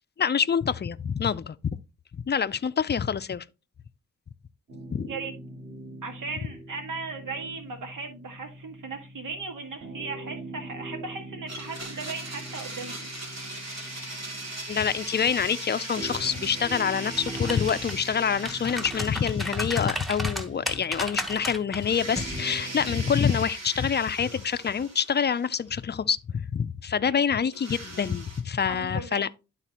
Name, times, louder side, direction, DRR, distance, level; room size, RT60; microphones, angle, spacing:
voice 1, 0.2-1.6 2.1-3.4 4.9-5.1 14.7-29.3, left 7 dB, 35° left, 0.4 m, -26 dB
sound 1, 4.7-23.1, right 1 dB, 35° right, 3.5 m, -43 dB
voice 2, 6.0-13.2 27.1-27.2 28.7-29.2, right 4 dB, 85° right, 1.9 m, -37 dB
Domestic sounds home sounds, 11.5-20.6 20.9-21.0 21.8-25.7 27.5-28.4, right 2 dB, 55° right, 2.3 m, -39 dB
sound 2, 17.0-17.9 18.3-21.8 22.2-22.4, equal, ahead, 1.0 m, -34 dB
11.5 x 4.1 x 2.9 m
wide cardioid pair, 80°, 31 cm